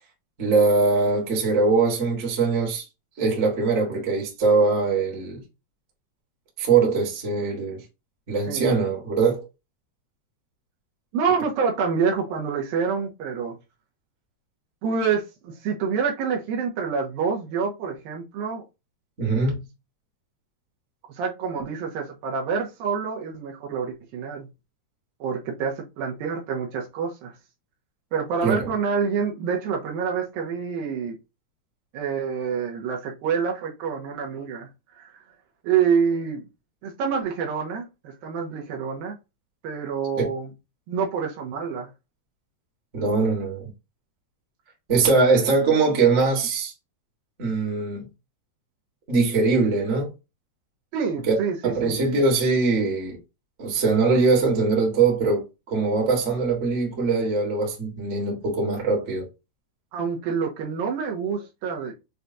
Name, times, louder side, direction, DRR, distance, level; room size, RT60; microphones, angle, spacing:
voice 1, 0.4-2.8 3.2-5.4 6.6-7.8 8.3-9.5 19.2-19.6 28.4-28.7 40.1-40.2 42.9-43.7 44.9-46.7 47.4-48.0 49.1-50.1 51.3-51.4 51.6-53.2 53.6-59.3, right 4 dB, 35° right, 1.1 m, -22 dB
voice 2, 11.1-13.6 14.8-18.6 21.1-24.5 25.2-27.3 28.1-31.2 31.9-34.7 35.0-35.1 35.6-36.4 36.8-39.2 39.6-40.5 40.9-41.9 50.9-52.0 59.9-61.9, right 6 dB, 80° right, 2.7 m, -27 dB
6.5 x 2.4 x 2.7 m
omnidirectional pair, 4.2 m